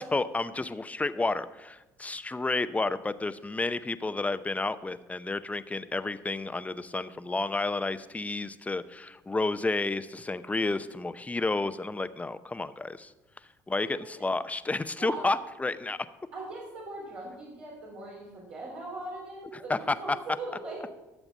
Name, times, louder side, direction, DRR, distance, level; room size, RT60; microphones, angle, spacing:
voice 1, 0.0-13.1 13.7-16.0 19.5-20.0, left 3 dB, 15° left, 13 dB, 0.6 m, -31 dB
voice 2, 15.0-15.3 16.3-20.8, right 2 dB, 80° right, -6 dB, 3.6 m, -40 dB
13.0 x 7.1 x 5.3 m, 1.0 s
hypercardioid pair, 65°, 9 cm